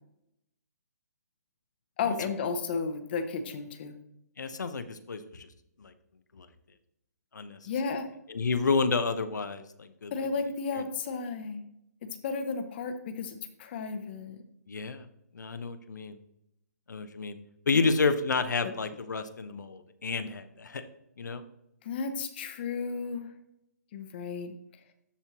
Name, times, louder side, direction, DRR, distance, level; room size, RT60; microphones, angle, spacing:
voice 1, 2.0-3.9 7.7-8.1 10.1-11.6 12.0-14.4 17.7-17.9 21.8-23.3 23.9-24.5, left 5 dB, 35° left, 7 dB, 0.8 m, -33 dB
voice 2, 4.4-5.5 5.8-5.9 6.3-6.5 7.3-7.6 8.3-10.1 14.7-15.1 15.3-16.2 16.9-17.4 17.7-20.9 21.2-21.4, left 4 dB, 85° left, 10 dB, 0.9 m, -30 dB
13.0 x 4.3 x 3.0 m, 0.79 s
hypercardioid pair, 155°, 9 cm